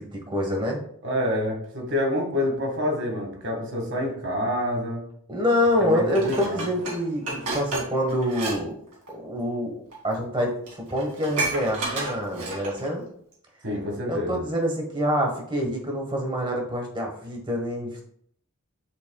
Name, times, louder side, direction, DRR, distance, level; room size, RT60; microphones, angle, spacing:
voice 1, 0.0-0.8 5.3-8.8 9.1-9.8 10.0-10.5 10.9-13.0 14.1-18.0, equal, 20° right, 0 dB, 1.4 m, -26 dB
voice 2, 1.0-5.0 5.8-6.6 13.6-14.4, left 1 dB, 55° right, 0 dB, 1.9 m, -27 dB
Dishes pots and pans, 6.1-8.6 8.9-9.1 9.9-10.0 10.4-10.5 10.7-12.9 13.3-13.4, right 2 dB, 90° right, 2.6 m, -31 dB
10.5 x 4.1 x 2.3 m, 0.65 s
head